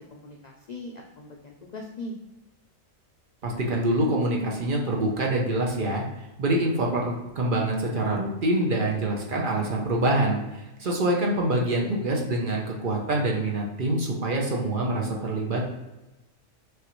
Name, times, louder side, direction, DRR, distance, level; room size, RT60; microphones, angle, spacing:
voice 1, 0.1-2.1 10.9-11.0, left 2 dB, 75° left, 0 dB, 0.3 m, -40 dB
voice 2, 3.4-6.0 6.4-15.7, right 1 dB, 50° right, -1 dB, 0.7 m, -25 dB
6.3 x 2.5 x 3.0 m, 1.0 s
omnidirectional pair, 1.4 m